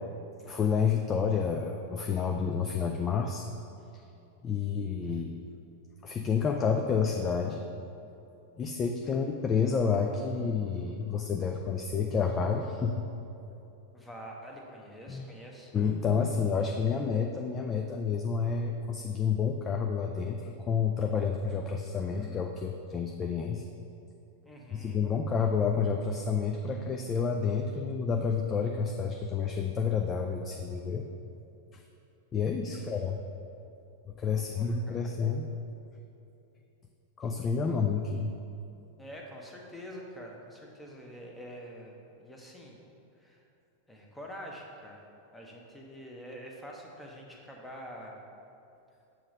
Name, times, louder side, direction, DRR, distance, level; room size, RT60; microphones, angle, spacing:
voice 1, 0.4-3.5 4.4-5.3 6.0-7.7 8.6-13.1 15.1-15.2 15.7-23.6 24.7-31.0 31.7-31.8 32.3-33.2 34.1-35.5 37.2-38.3, left 6 dB, 25° left, 3 dB, 0.3 m, -29 dB
voice 2, 13.9-15.7 24.4-25.0 32.7-33.0 34.3-35.0 37.6-37.8 39.0-42.8 43.2-43.4 43.9-45.0 45.3-48.2, equal, 5° left, -1 dB, 0.9 m, -46 dB
7.2 x 3.1 x 5.0 m, 2.7 s
figure-of-eight pair, 90°, 0 cm